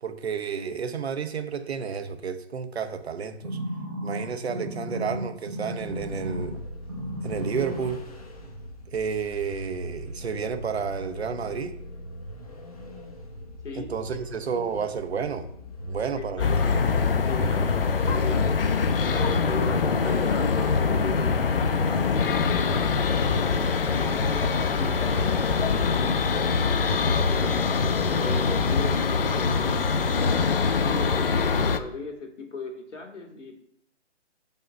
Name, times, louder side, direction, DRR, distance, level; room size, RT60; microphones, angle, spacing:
voice 1, 0.0-3.6 4.0-6.5 7.2-8.0 8.9-11.7 13.8-15.5 15.8-16.5 16.7-16.8, right 6 dB, 60° right, 8 dB, 1.0 m, -31 dB
sound 1, 3.4-6.6 6.9-7.9 8.5-8.6, equal, 20° right, 0.8 m, -34 dB
Vehicle, 5.8-21.7, equal, 30° left, 0.9 m, -41 dB
voice 2, 16.1-16.9 17.2-23.0 23.8-26.5 27.3-29.8 30.8-33.6, left 3 dB, 80° left, 3 dB, 2.0 m, -37 dB
sound 2, 16.4-31.8, left 5 dB, 50° left, 0.6 m, -23 dB
5.5 x 4.4 x 6.1 m, 0.72 s
hypercardioid pair, 175°, 36 cm